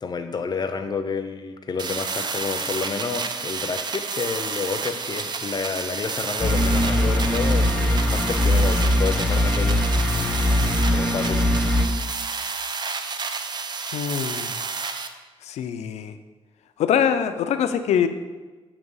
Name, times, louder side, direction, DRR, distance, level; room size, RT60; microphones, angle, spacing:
voice 1, 0.0-9.9 10.9-11.4 13.0-13.1, left 5 dB, 40° left, 8 dB, 0.6 m, -30 dB
sound 1, 1.8-15.1, right 4 dB, 40° right, 0.5 m, -30 dB
sound 2, 6.4-11.9, left 1 dB, 10° left, 0.9 m, -21 dB
voice 2, 13.9-14.5 15.5-16.1 16.8-18.1, left 8 dB, 90° left, 9 dB, 0.4 m, -23 dB
8.0 x 2.9 x 5.4 m, 1.3 s
cardioid pair, 95°, 11 cm